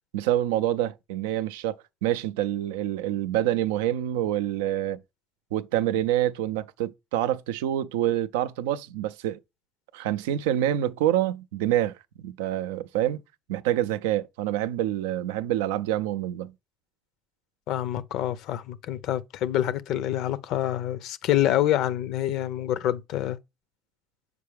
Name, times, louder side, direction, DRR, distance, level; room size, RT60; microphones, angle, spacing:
voice 1, 0.1-1.8 2.0-5.0 5.5-9.4 9.9-12.0 12.2-13.2 13.5-16.5, right 12 dB, 85° right, 0.3 m, -26 dB
voice 2, 17.7-23.4, left 12 dB, 70° left, 0.5 m, -26 dB
6.6 x 4.7 x 3.3 m
supercardioid pair, 70°, 0 cm